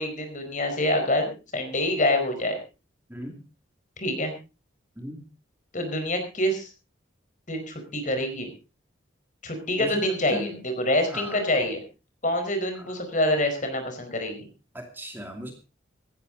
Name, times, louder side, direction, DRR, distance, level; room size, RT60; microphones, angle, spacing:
voice 1, 0.0-2.6 4.0-4.3 5.7-6.7 7.5-8.5 9.4-11.8 12.2-14.5, left 1 dB, 40° left, 6 dB, 4.7 m, -26 dB
voice 2, 9.8-10.5 11.1-11.4 14.7-15.5, equal, 10° right, 3 dB, 2.5 m, -36 dB
16.5 x 14.5 x 4.0 m, 0.32 s
head